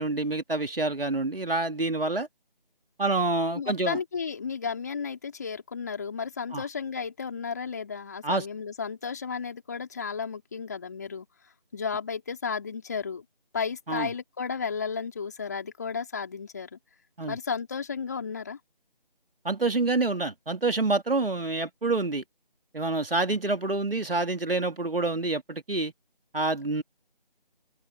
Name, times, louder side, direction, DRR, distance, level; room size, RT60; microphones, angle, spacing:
voice 1, 0.0-2.3 3.0-4.0 6.5-6.6 8.2-8.5 13.9-14.1 17.2-17.4 19.4-22.2 22.7-25.9 26.3-26.8, right 2 dB, 75° right, 2.9 m, -27 dB
voice 2, 3.5-11.3 11.7-13.2 13.5-16.8 17.3-18.6, left 5 dB, 20° left, 4.2 m, -33 dB
open air
figure-of-eight pair, 175°, 29 cm